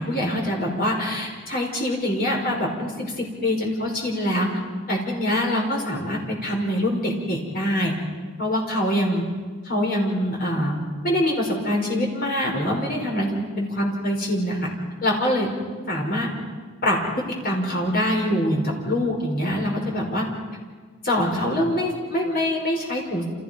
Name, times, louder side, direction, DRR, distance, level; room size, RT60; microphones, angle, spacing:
voice 1, 0.0-4.5 4.9-7.9 8.4-9.3 9.6-10.8 11.0-14.7 15.0-15.5 15.9-16.3 16.8-17.0 17.4-20.3 21.0-23.2, left 1 dB, 45° left, 0 dB, 5.5 m, -24 dB
29.5 x 28.0 x 5.4 m, 1.5 s
head